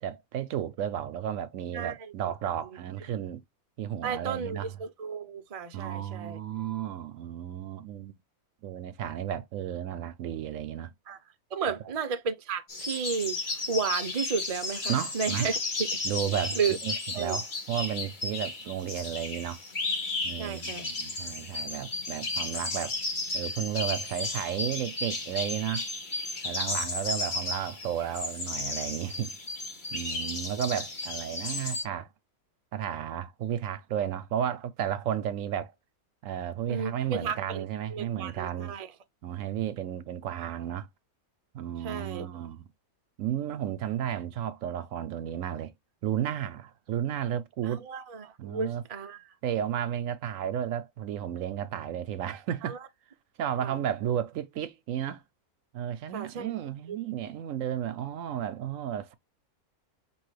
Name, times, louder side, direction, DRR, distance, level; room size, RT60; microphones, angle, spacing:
voice 1, 0.0-3.4 3.8-4.7 5.7-8.1 8.6-10.9 14.9-15.5 16.0-19.6 20.2-23.0 23.3-25.8 26.4-29.3 29.9-32.1 32.7-35.7 36.2-38.7 39.2-40.9 41.5-42.6 43.2-45.7 46.0-47.8 48.4-48.8 49.4-52.8 53.4-55.2 55.7-59.1, right 10 dB, 70° right, 0.9 m, -33 dB
voice 2, 1.7-2.1 2.6-2.8 4.0-6.4 11.1-11.2 11.5-13.4 13.7-15.9 16.5-16.8 17.1-17.4 20.4-20.9 36.7-37.6 37.9-38.9 41.8-42.3 47.6-49.2 52.6-52.8 53.6-53.8 56.1-56.5 56.9-57.0, right 6 dB, 50° right, 0.4 m, -33 dB
sound 1, 12.7-31.8, left 3 dB, 35° left, 1.1 m, -34 dB
5.4 x 2.9 x 3.1 m
omnidirectional pair, 1.6 m